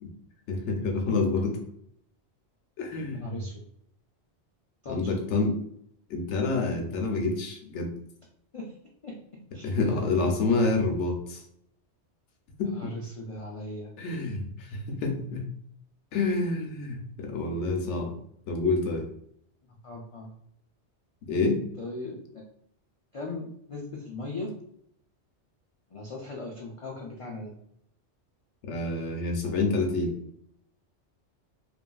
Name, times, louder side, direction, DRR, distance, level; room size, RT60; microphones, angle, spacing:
voice 1, 0.5-1.6 2.8-3.4 4.9-5.5 6.1-7.9 9.6-11.4 12.6-12.9 14.0-15.5 16.1-18.1 18.5-19.1 21.3-21.6 28.6-30.1, left 3 dB, 85° left, 3 dB, 0.9 m, -28 dB
voice 2, 3.1-3.6 4.8-5.2 8.5-8.7 9.0-9.2 9.5-10.3 12.6-13.9 19.7-20.3 21.8-22.2 23.1-24.5 25.9-27.5, left 2 dB, 60° left, -2 dB, 0.3 m, -38 dB
2.9 x 2.5 x 2.2 m, 0.69 s
omnidirectional pair, 1.2 m